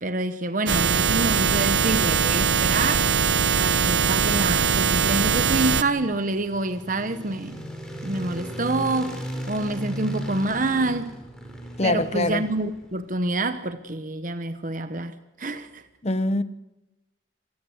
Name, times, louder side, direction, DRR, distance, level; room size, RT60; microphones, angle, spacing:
voice 1, 0.0-3.1 3.5-7.6 8.0-11.2 11.8-15.8, right 2 dB, 40° right, 1.1 m, -27 dB
sound 1, 0.7-5.8, right 6 dB, 70° right, 1.0 m, -21 dB
sound 2, 5.0-13.0, equal, 5° left, 5.2 m, -37 dB
voice 2, 11.8-12.4 16.0-16.4, left 2 dB, 30° left, 1.0 m, -24 dB
26.5 x 19.0 x 8.0 m
head